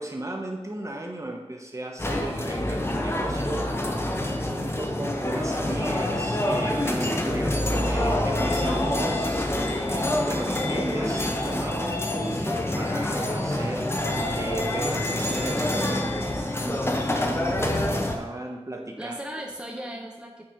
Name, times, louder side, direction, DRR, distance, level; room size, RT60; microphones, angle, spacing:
voice 1, 0.0-3.7 4.0-13.9 14.3-16.1 17.0-19.1, right 1 dB, 30° right, 1 dB, 1.2 m, -35 dB
sound 1, 2.0-18.2, left 1 dB, 20° left, 0.9 m, -26 dB
voice 2, 16.6-17.0 19.0-20.5, right 1 dB, 10° right, 1 dB, 0.8 m, -37 dB
8.6 x 4.3 x 5.1 m, 1.1 s
wide cardioid pair, 70°, 11 cm